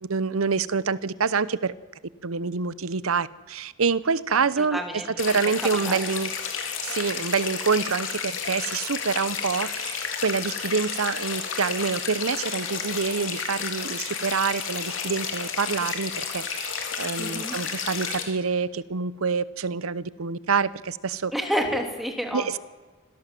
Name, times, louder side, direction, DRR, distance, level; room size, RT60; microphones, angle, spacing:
voice 1, 0.0-1.7 2.2-4.8 5.2-6.3 6.8-21.3 22.3-22.6, right 5 dB, 85° right, 18 dB, 0.8 m, -26 dB
voice 2, 4.6-5.1 5.6-6.0 17.2-17.6 21.3-22.6, equal, ahead, 3 dB, 3.0 m, -29 dB
sound 1, 5.2-18.2, left 6 dB, 65° left, 3.6 m, -31 dB
25.5 x 17.0 x 7.7 m, 1.3 s
head